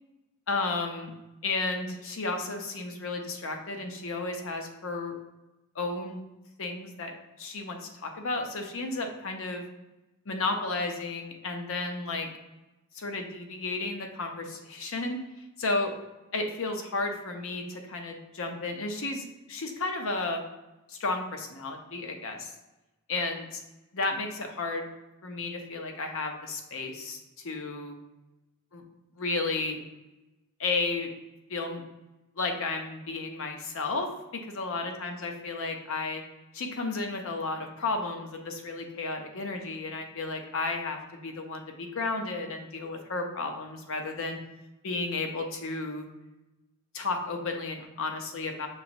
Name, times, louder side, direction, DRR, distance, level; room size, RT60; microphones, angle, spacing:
voice 1, 0.5-1.1 1.4-5.1 5.7-6.2 6.6-7.1 7.4-9.6 10.3-12.3 12.9-15.2 15.6-15.9 16.3-20.4 20.9-22.5 23.1-23.6 23.9-24.9 25.2-27.2 27.4-28.0 28.7-28.8 29.2-29.8 30.6-31.1 31.5-31.8 32.4-36.2 36.5-44.4 44.8-46.1 46.9-48.7, left 3 dB, 65° left, 4 dB, 0.7 m, -33 dB
5.4 x 2.9 x 2.6 m, 1.0 s
head